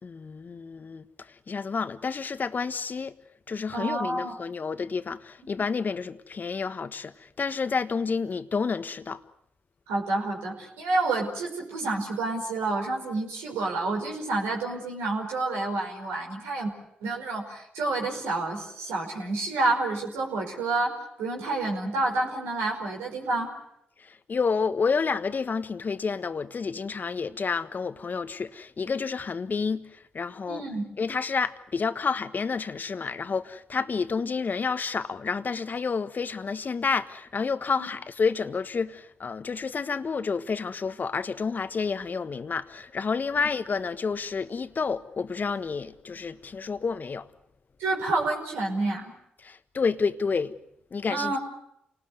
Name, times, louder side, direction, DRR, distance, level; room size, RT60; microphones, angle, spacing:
voice 1, 0.0-3.1 3.5-9.2 24.0-30.6 31.0-47.3 49.4-50.5 50.9-51.4, left 5 dB, 50° left, 1.4 m, -29 dB
voice 2, 3.7-4.4 9.9-16.7 17.0-23.5 30.5-30.9 37.8-37.9 47.8-49.1 51.1-51.4, right 2 dB, 85° right, 5.2 m, -29 dB
28.5 x 19.5 x 8.1 m
hypercardioid pair, 40°, 4 cm